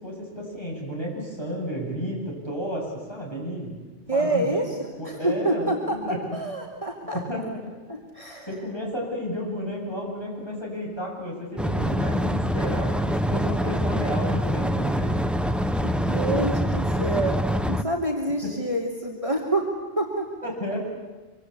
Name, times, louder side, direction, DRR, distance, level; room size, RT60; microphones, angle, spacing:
voice 1, 0.0-3.7 4.1-4.6 5.0-6.2 7.1-7.7 8.5-15.2 18.2-18.5 20.4-20.8, equal, 20° left, -2 dB, 8.1 m, -32 dB
voice 2, 4.1-4.8 5.0-6.0 6.3-6.9 7.9-8.5 15.8-17.4 17.7-19.6 20.0-20.5, right 2 dB, 30° right, 0 dB, 3.0 m, -27 dB
sound 1, 11.6-17.8, equal, ahead, 0.8 m, -25 dB
26.0 x 24.5 x 8.3 m, 1.3 s
omnidirectional pair, 1.2 m